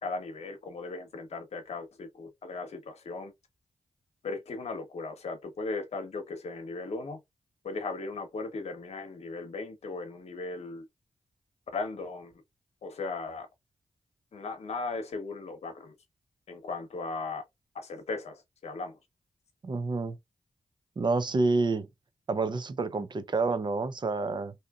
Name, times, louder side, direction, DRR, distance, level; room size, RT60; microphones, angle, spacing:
voice 1, 0.0-3.3 4.2-7.2 7.6-10.9 11.7-12.4 12.8-13.5 14.3-15.9 16.5-17.4 17.7-19.0, left 3 dB, 75° left, 0.9 m, -37 dB
voice 2, 19.6-20.2 21.0-21.9 22.3-24.5, right 3 dB, 40° right, 0.5 m, -28 dB
2.7 x 2.5 x 2.3 m
cardioid pair, 45°, 11 cm